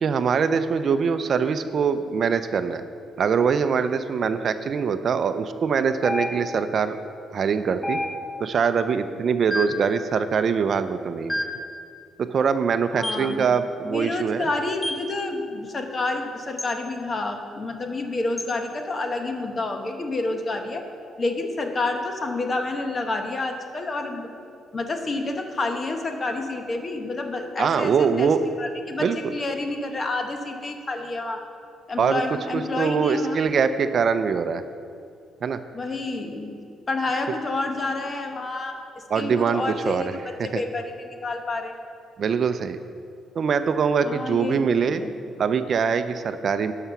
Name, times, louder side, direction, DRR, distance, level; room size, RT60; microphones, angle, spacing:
voice 1, 0.0-2.8 3.2-7.0 7.3-8.0 8.4-11.4 12.2-14.5 27.6-28.4 29.0-29.2 32.0-32.2 32.5-34.6 35.4-35.6 39.1-40.0 40.5-40.6 42.2-42.8 43.4-45.0 45.4-46.7, right 6 dB, 55° right, 10 dB, 0.5 m, -23 dB
sound 1, 6.0-6.7 7.8-8.5 9.5-9.9 11.3-11.7 13.0-13.3 14.8-15.1 16.6-16.8 18.4-18.6, left 1 dB, 15° left, 1.1 m, -29 dB
voice 2, 12.9-13.5 13.8-20.9 21.2-24.3 24.7-28.3 28.6-31.4 31.9-33.4 35.7-36.6 36.9-41.7 44.0-45.1, left 2 dB, 35° left, 5 dB, 1.1 m, -29 dB
11.0 x 5.9 x 5.7 m, 2.4 s
cardioid pair, 90°, 0 cm